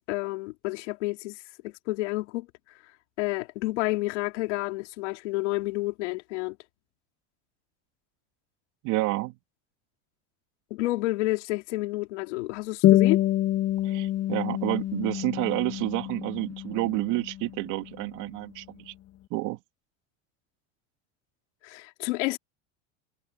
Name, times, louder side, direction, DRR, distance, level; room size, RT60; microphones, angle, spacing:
voice 1, 0.1-1.4 1.6-2.5 3.2-6.6 10.7-13.2 21.6-22.4, left 20 dB, 85° left, 3.1 m, -30 dB
voice 2, 8.8-9.4 13.8-18.9 19.3-19.6, right 20 dB, 60° right, 2.7 m, -29 dB
sound 1, 12.8-17.8, left 14 dB, 45° left, 1.7 m, -26 dB
supercardioid pair, 125°, 34 cm